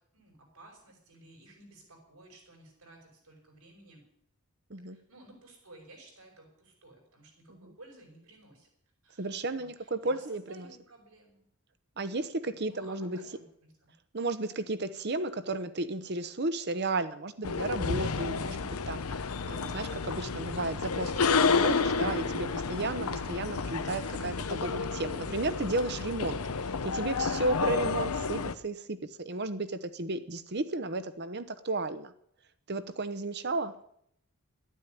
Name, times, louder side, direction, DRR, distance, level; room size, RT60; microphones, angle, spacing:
voice 1, 0.1-4.0 4.9-8.7 9.0-11.5 12.4-13.9 28.0-28.4 33.4-33.6, right 2 dB, 80° right, 1 dB, 6.0 m, -55 dB
voice 2, 9.2-10.7 12.0-13.2 14.1-19.2 19.5-32.1 32.7-33.7, right 2 dB, 50° right, 12 dB, 0.9 m, -34 dB
sound 1, 17.4-28.5, left 5 dB, 80° left, 0.8 m, -30 dB
12.5 x 9.3 x 9.3 m, 0.71 s
head